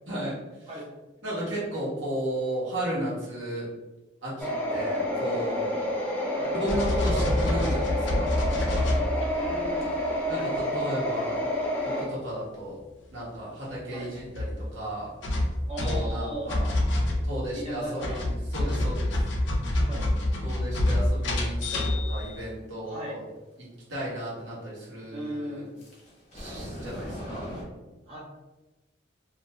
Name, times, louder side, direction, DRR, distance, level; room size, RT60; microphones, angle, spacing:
voice 1, 0.1-0.7 1.2-3.7 4.2-5.8 6.5-8.4 10.3-11.5 11.8-12.8 13.1-15.2 15.8-16.7 17.2-19.1 20.4-23.2 23.6-25.6 26.3-27.6, equal, 75° right, -7 dB, 1.1 m, -34 dB
sound 1, 4.4-12.0, equal, 10° left, 0.4 m, -29 dB
sound 2, 6.7-9.5 9.8-10.1 13.7-13.8 14.1-14.5 15.2-17.6 18.0-22.4, left 1 dB, 65° left, 0.5 m, -27 dB
voice 2, 9.3-10.0 10.3-10.8 13.9-14.1 15.7-16.5 17.6-18.2 18.6-18.7 19.9-20.1 22.8-23.2 25.1-25.6 28.1-28.2, right 1 dB, 30° right, -4 dB, 0.7 m, -37 dB
sound 3, 25.8-27.6, equal, 35° left, 0.7 m, -39 dB
2.5 x 2.1 x 2.9 m, 1.1 s
head